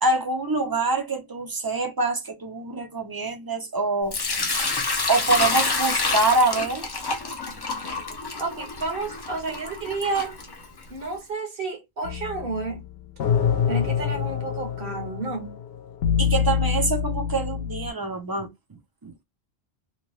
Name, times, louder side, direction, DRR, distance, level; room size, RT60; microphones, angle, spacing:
voice 1, 0.0-4.2 5.1-6.9 16.2-18.5 19.0-19.1, right 3 dB, 30° right, 0.4 m, -25 dB
Sink (filling or washing) / Liquid, 4.1-11.0, left 3 dB, 35° left, 0.4 m, -28 dB
voice 2, 8.4-10.4 10.9-12.8 13.7-15.6, right 3 dB, 60° right, 1.0 m, -31 dB
sound 1, 12.0-17.9, left 7 dB, 70° left, 0.8 m, -26 dB
2.8 x 2.2 x 3.0 m
omnidirectional pair, 1.1 m